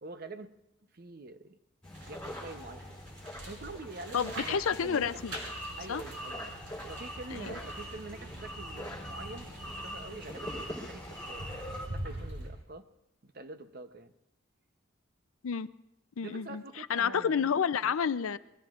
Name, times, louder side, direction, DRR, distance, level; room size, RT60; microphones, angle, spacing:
voice 1, 0.0-0.6 0.9-1.6 1.8-2.8 3.5-5.1 5.8-6.5 6.9-12.9 13.2-14.1 16.2-17.5 17.8-17.9, right 2 dB, 45° right, 9 dB, 0.8 m, -46 dB
sound 1, 1.8-11.9, equal, 5° left, 4.0 m, -43 dB
sound 2, 1.9-12.5, right 1 dB, 65° right, 5.4 m, -45 dB
voice 2, 4.1-5.4 5.9-6.0 7.3-7.5 15.4-15.7 16.2-18.4, left 7 dB, 85° left, 15 dB, 0.5 m, -30 dB
27.0 x 21.5 x 2.5 m, 0.87 s
head